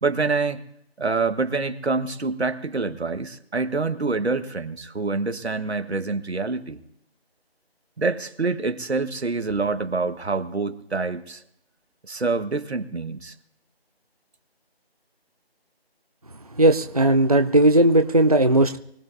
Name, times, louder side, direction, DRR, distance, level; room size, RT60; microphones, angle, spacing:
voice 1, 0.0-0.6 1.0-6.8 8.0-11.4 12.1-13.3, right 3 dB, 90° right, 9 dB, 1.5 m, -26 dB
voice 2, 16.6-18.8, right 1 dB, 35° right, 8 dB, 0.5 m, -17 dB
24.0 x 16.0 x 2.7 m, 0.76 s
figure-of-eight pair, 175°, 31 cm